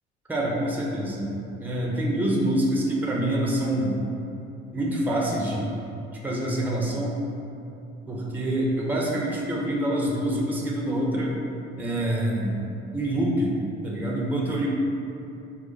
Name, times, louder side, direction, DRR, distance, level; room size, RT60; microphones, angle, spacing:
voice 1, 0.3-1.3 1.6-4.0 4.7-5.7 6.2-7.2 8.1-11.3 11.8-12.6 12.9-13.5 13.8-14.7, right 1 dB, 5° right, -3 dB, 0.7 m, -26 dB
4.0 x 2.4 x 4.0 m, 2.8 s
hypercardioid pair, 60°, 32 cm